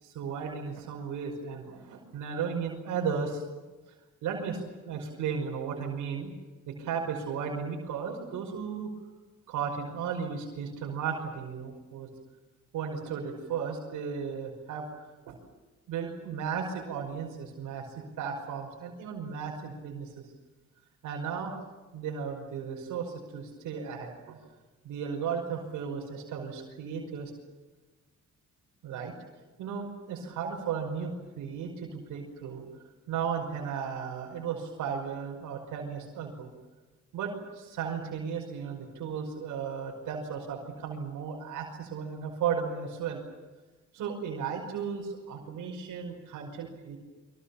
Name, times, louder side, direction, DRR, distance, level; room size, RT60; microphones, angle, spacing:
voice 1, 0.0-3.4 4.2-4.6 4.9-6.3 6.7-8.9 9.5-12.1 12.7-14.9 15.3-15.4 15.9-20.2 21.0-21.5 21.9-24.4 24.8-27.3 28.8-29.1 29.6-32.7 33.1-36.5 37.1-43.2 43.9-47.0, right 6 dB, 85° right, 0 dB, 5.6 m, -35 dB
26.0 x 24.5 x 7.2 m, 1.2 s
cardioid pair, 90°, 30 cm